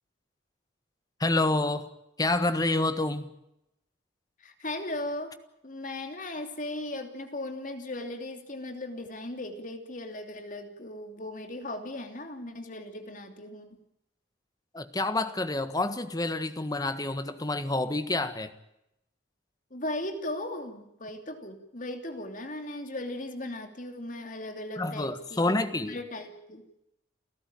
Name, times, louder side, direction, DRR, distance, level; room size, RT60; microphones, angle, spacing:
voice 1, 1.2-1.9 2.2-3.3 14.7-18.5 24.8-26.0, left 2 dB, 20° left, 11 dB, 1.5 m, -28 dB
voice 2, 4.4-5.4 5.6-13.8 19.7-26.7, left 1 dB, 45° left, 6 dB, 2.9 m, -37 dB
29.5 x 14.0 x 9.0 m, 0.84 s
head